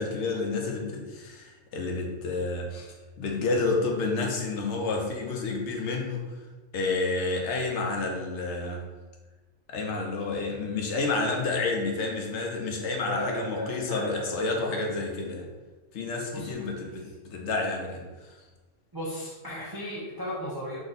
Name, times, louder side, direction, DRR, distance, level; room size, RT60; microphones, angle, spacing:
voice 1, 0.0-6.2 6.7-8.8 9.7-15.5 15.9-18.4, left 3 dB, 65° left, 1 dB, 0.9 m, -30 dB
voice 2, 13.1-14.4 14.7-15.1 16.3-17.1 18.9-20.8, equal, 35° right, -6 dB, 0.3 m, -36 dB
3.6 x 2.3 x 3.9 m, 1.2 s
omnidirectional pair, 1.4 m